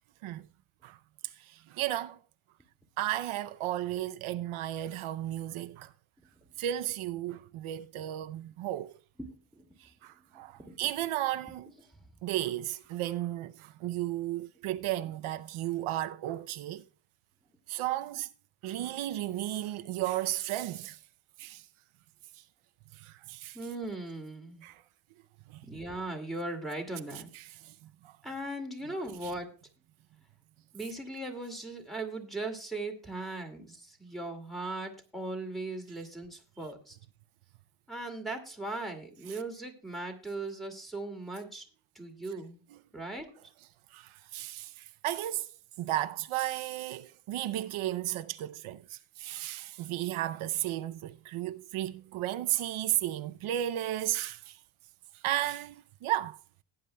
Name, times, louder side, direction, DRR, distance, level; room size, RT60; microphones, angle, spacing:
voice 1, 1.2-2.2 3.0-5.9 6.6-8.9 9.8-11.7 12.2-16.8 17.7-18.3 18.6-21.0 21.4-21.7 22.4-22.5 22.9-23.6 24.6-24.8 25.5-25.6 27.3-27.7 28.0-28.2 29.2-29.3 43.9-45.5 45.8-54.6 55.1-56.4, right 13 dB, 80° right, 0.6 m, -34 dB
voice 2, 9.3-9.7 10.3-10.8 11.9-12.0 23.5-24.6 25.6-27.3 28.2-29.5 30.7-37.0 37.9-41.7 41.9-42.6 42.9-43.3, right 2 dB, ahead, 2.2 m, -38 dB
17.0 x 9.9 x 2.2 m
cardioid pair, 135°, 48 cm